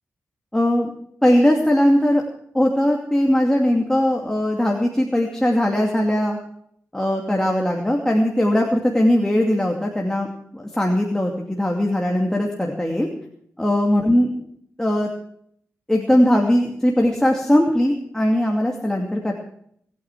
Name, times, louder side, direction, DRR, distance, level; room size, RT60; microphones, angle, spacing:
voice 1, 0.5-0.9 1.2-2.2 2.5-6.4 6.9-10.3 10.5-13.1 13.6-14.3 14.8-15.1 15.9-19.3, left 1 dB, 10° left, 0 dB, 2.5 m, -19 dB
20.0 x 9.3 x 6.2 m, 0.68 s
cardioid pair, 65°, 6 cm